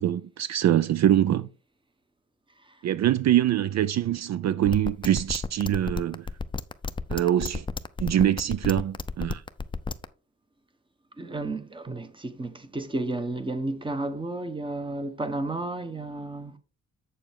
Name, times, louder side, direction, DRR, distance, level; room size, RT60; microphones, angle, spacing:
voice 1, 0.0-1.5 2.8-6.3 7.1-7.7 8.0-9.4, right 11 dB, 60° right, 0.5 m, -24 dB
sound 1, 4.7-10.0, left 4 dB, 15° left, 0.5 m, -31 dB
voice 2, 11.2-16.5, right 2 dB, 15° right, 1.1 m, -32 dB
7.9 x 6.9 x 3.6 m
wide cardioid pair, 135°, 30 cm